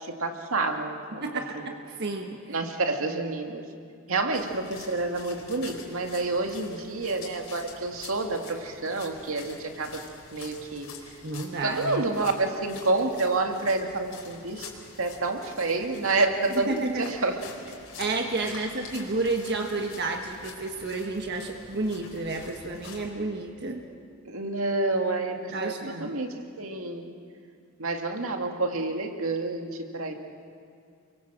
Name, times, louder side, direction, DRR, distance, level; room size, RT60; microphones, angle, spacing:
voice 1, 0.0-1.2 1.5-1.7 2.5-3.6 4.1-10.0 10.3-10.9 11.6-14.7 15.0-17.4 18.4-18.7 18.9-19.0 24.2-27.2 27.8-30.1, right 3 dB, 80° right, 3 dB, 2.2 m, -29 dB
voice 2, 1.2-1.6 2.0-2.4 11.2-12.0 16.5-17.0 18.0-23.8 25.5-26.2, right 3 dB, 55° right, 2 dB, 1.5 m, -31 dB
sound 1, 4.3-23.1, left 5 dB, 70° left, 4.7 m, -47 dB
30.0 x 23.0 x 7.6 m, 2.3 s
head